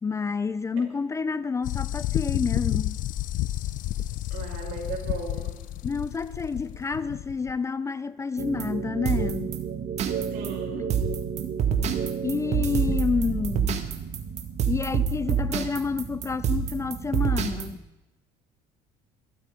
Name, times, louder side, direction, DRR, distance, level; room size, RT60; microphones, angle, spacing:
voice 1, 0.0-3.0 5.8-9.5 10.8-10.9 12.2-13.8 14.7-17.8, left 5 dB, 20° left, 0.5 m, -29 dB
sound 1, 1.6-7.5, left 14 dB, 60° left, 0.6 m, -30 dB
voice 2, 4.3-5.5 10.3-10.9, right 5 dB, 70° right, 5.6 m, -36 dB
sound 2, 8.4-17.7, right 7 dB, 45° right, 1.9 m, -28 dB
20.5 x 14.0 x 5.1 m
cardioid pair, 125°, 15 cm